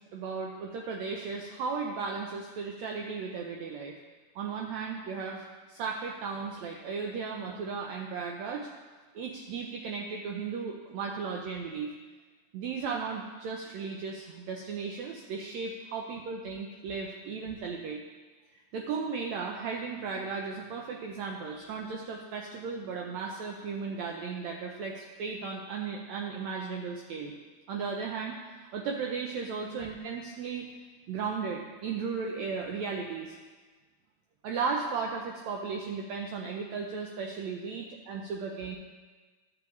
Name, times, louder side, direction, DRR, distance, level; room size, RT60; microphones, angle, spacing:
voice 1, 0.1-4.0 4.3-8.7 9.1-11.9 12.5-18.0 18.5-27.3 27.7-30.7 31.1-33.3 34.4-38.8, right 5 dB, 80° right, 1 dB, 1.6 m, -35 dB
12.5 x 6.9 x 3.1 m, 1.4 s
omnidirectional pair, 3.8 m